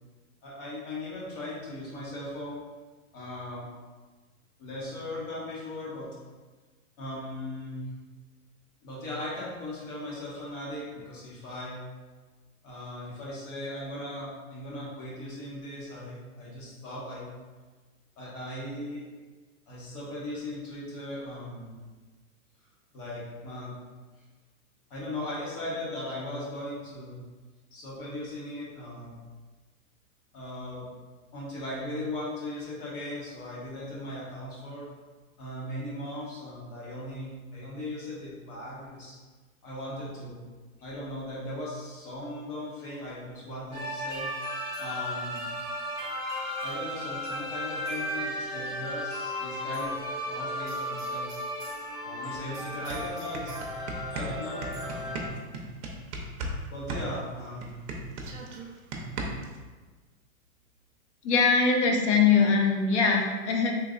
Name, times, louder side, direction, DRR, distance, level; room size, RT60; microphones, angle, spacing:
voice 1, 0.4-2.6 3.1-3.7 4.6-6.1 7.0-7.8 8.8-11.8 12.6-17.3 18.2-19.0 19.7-21.8 22.9-23.7 24.9-27.2 27.7-29.2 30.3-30.9 31.3-34.9 35.4-39.2 39.6-40.4 40.8-44.3 44.8-45.6 46.6-50.0 50.3-51.3 52.0-53.5 54.1-55.3 56.7-57.8, left 1 dB, 40° left, -6 dB, 1.4 m, -38 dB
sound 1, 43.7-55.3, equal, 10° right, 0.3 m, -35 dB
sound 2, 52.3-52.4 52.7-56.6 56.9-59.6, right 2 dB, 55° right, 0.7 m, -36 dB
voice 2, 61.2-63.8, left 5 dB, 55° left, 2 dB, 0.6 m, -22 dB
3.7 x 3.2 x 2.4 m, 1.3 s
hypercardioid pair, 140°, 43 cm